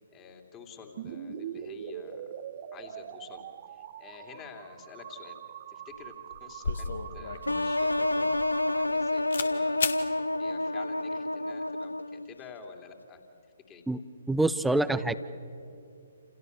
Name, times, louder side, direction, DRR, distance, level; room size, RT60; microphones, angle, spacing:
voice 1, 0.1-2.2 2.7-3.4 3.7-5.4 5.7-6.9 7.1-9.8 10.1-13.2 13.7-13.8, left 6 dB, 20° left, 3 dB, 3.1 m, -49 dB
sound 1, 1.0-8.9, right 9 dB, 35° right, 1.3 m, -43 dB
sound 2, 5.9-6.0 6.3-9.0 9.3-9.5 9.8-10.0, left 5 dB, 55° left, 2.0 m, -34 dB
sound 3, 7.5-12.3, left 2 dB, 80° left, 0.9 m, -29 dB
voice 2, 14.3-15.1, right 2 dB, 5° right, 13 dB, 0.8 m, -25 dB
29.5 x 29.0 x 6.9 m, 2.6 s
figure-of-eight pair, 130°, 0 cm